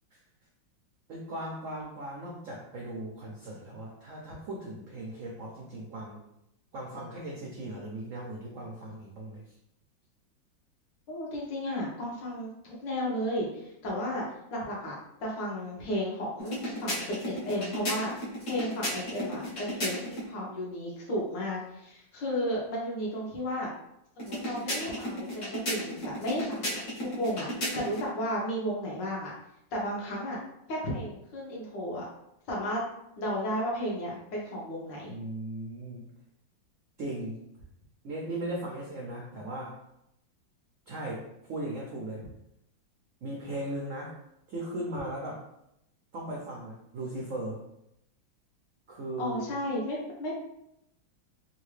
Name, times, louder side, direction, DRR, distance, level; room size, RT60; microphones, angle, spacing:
voice 1, 1.1-6.2 6.7-9.4 35.1-36.1 37.0-37.4 38.0-39.8 40.9-42.2 43.2-44.1 44.5-45.4 46.1-47.6 48.9-49.6, right 1 dB, 80° right, -2 dB, 0.7 m, -38 dB
voice 2, 11.1-14.2 14.5-18.1 18.4-23.7 24.2-27.5 27.7-29.3 29.7-30.4 30.7-32.1 32.5-32.8 33.2-35.1 49.2-50.4, equal, 70° left, -4 dB, 1.6 m, -33 dB
sound 1, 16.4-20.3 24.2-28.1, equal, 45° left, 1.3 m, -35 dB
3.7 x 2.4 x 3.2 m, 0.81 s
omnidirectional pair, 2.1 m